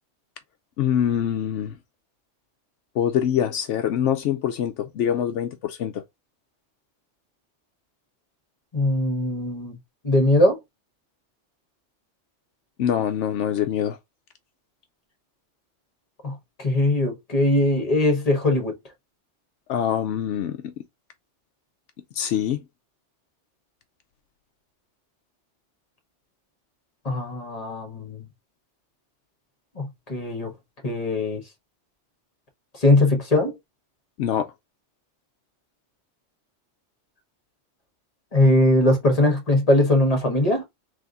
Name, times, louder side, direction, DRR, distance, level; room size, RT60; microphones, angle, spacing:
voice 1, 0.8-1.8 3.0-6.0 12.8-14.0 19.7-20.7 22.1-22.6 34.2-34.5, left 9 dB, 80° left, 0.9 m, -24 dB
voice 2, 8.7-9.7 10.0-10.6 16.2-18.7 27.0-28.2 29.7-30.5 30.8-31.4 32.8-33.5 38.3-40.6, left 1 dB, 30° left, 1.5 m, -21 dB
3.6 x 3.4 x 3.9 m
omnidirectional pair, 1.2 m